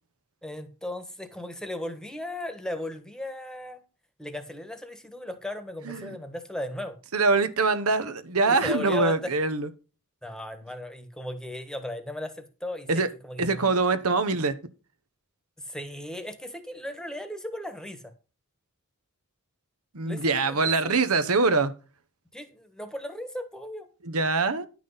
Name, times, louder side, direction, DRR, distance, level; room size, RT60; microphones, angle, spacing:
voice 1, 0.4-3.8 4.2-7.0 8.4-9.3 10.2-13.7 15.6-18.1 20.0-20.7 22.3-23.9, left 1 dB, 5° left, 1.3 m, -36 dB
voice 2, 5.8-6.2 7.1-9.7 12.9-13.1 13.4-14.6 19.9-21.7 24.0-24.7, right 3 dB, 75° right, 1.1 m, -24 dB
10.5 x 6.0 x 5.6 m
head